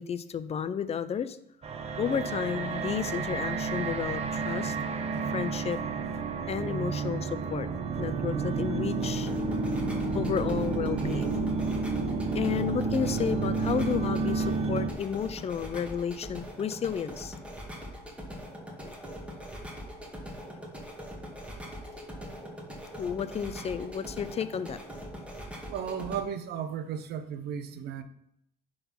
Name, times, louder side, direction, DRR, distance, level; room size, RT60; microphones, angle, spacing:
voice 1, 0.0-1.4 2.0-4.8 5.2-5.8 6.5-7.7 8.0-9.3 10.1-11.4 12.3-17.4 18.8-19.0 23.0-24.8, left 8 dB, 40° left, 14 dB, 0.6 m, -32 dB
sound 1, 1.6-14.9, right 4 dB, 40° right, 0.9 m, -30 dB
sound 2, 9.0-26.2, equal, 5° right, 1.9 m, -42 dB
voice 2, 25.7-28.0, right 8 dB, 70° right, 10 dB, 0.9 m, -34 dB
10.0 x 3.9 x 5.6 m, 0.74 s
cardioid pair, 110°, 17 cm